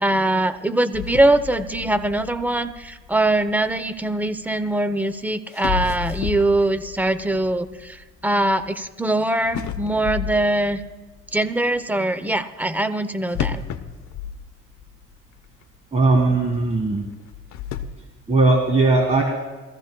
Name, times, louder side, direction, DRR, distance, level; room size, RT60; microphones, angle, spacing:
voice 1, 0.0-8.0 8.2-10.8 11.3-13.6, right 1 dB, 5° right, 11 dB, 0.7 m, -22 dB
sound 1, 0.9-4.1 5.0-5.1 5.5-8.9 9.5-11.4 13.3-15.1 15.4-15.5 16.1-16.2 17.2-17.9, left 8 dB, 75° left, 0.8 m, -32 dB
voice 2, 15.9-17.1 18.3-19.2, right 3 dB, 20° right, 1 dB, 1.9 m, -18 dB
22.0 x 14.5 x 2.2 m, 1.2 s
cardioid pair, 90°, 30 cm